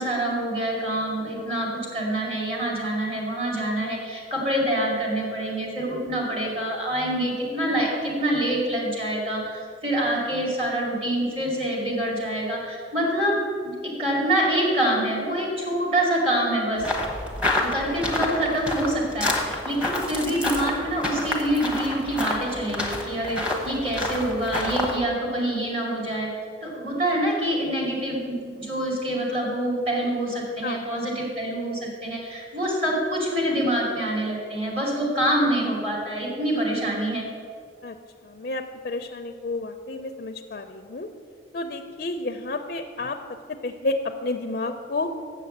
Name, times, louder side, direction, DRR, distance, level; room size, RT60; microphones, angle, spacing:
voice 1, 0.0-13.7 14.0-16.9 17.6-26.3 26.6-37.3, right 1 dB, 30° right, -3 dB, 2.5 m, -26 dB
sound 1, 16.8-25.0, left 1 dB, 5° right, 1.0 m, -28 dB
voice 2, 38.2-41.1 41.5-43.2 43.6-45.1, left 2 dB, 50° left, 5 dB, 0.4 m, -30 dB
7.6 x 6.7 x 7.8 m, 2.2 s
head